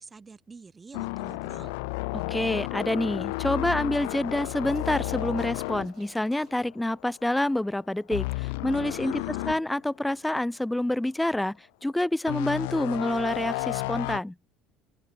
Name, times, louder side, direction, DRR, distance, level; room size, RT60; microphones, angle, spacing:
voice 1, 0.0-1.7 9.0-9.6, right 4 dB, 25° right, 1.8 m, -47 dB
sound 1, 0.9-7.0 7.3-7.6 8.1-9.6 10.1-10.2 12.3-14.2, left 27 dB, 65° left, 0.4 m, -32 dB
voice 2, 2.1-11.6 11.8-14.3, left 1 dB, 5° left, 0.5 m, -27 dB
sound 2, 3.3-6.5, right 10 dB, 45° right, 2.5 m, -54 dB
open air
figure-of-eight pair, 60°, 0 cm